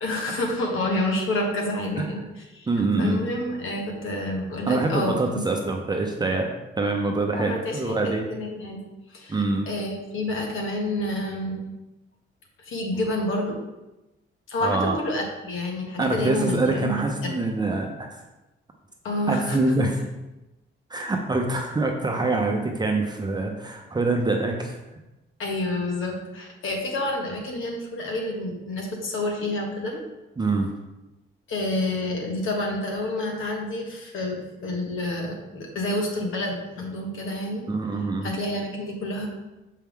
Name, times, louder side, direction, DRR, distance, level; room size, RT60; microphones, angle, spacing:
voice 1, 0.0-2.7 3.0-5.4 7.3-8.8 9.1-11.6 12.6-13.6 14.5-17.3 19.0-19.9 25.4-30.0 31.5-37.6 38.2-39.3, left 1 dB, 75° left, 1 dB, 1.6 m, -29 dB
voice 2, 2.7-3.2 4.7-6.5 6.8-8.2 9.3-9.7 14.6-15.0 16.0-18.2 19.3-19.9 20.9-24.8 30.4-30.7 37.7-38.3, right 2 dB, 20° right, 2 dB, 0.7 m, -25 dB
7.2 x 4.6 x 3.7 m, 1.0 s
cardioid pair, 125°, 21 cm